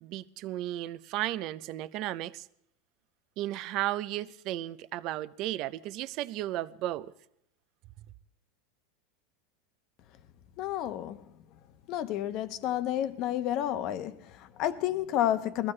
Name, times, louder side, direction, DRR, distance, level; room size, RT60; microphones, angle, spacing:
voice 1, 0.0-2.5 3.4-7.1, right 14 dB, 40° right, 0.5 m, -34 dB
voice 2, 10.6-11.2 11.9-15.7, left 12 dB, 40° left, 0.8 m, -30 dB
22.0 x 14.5 x 3.2 m
supercardioid pair, 160°, 0 cm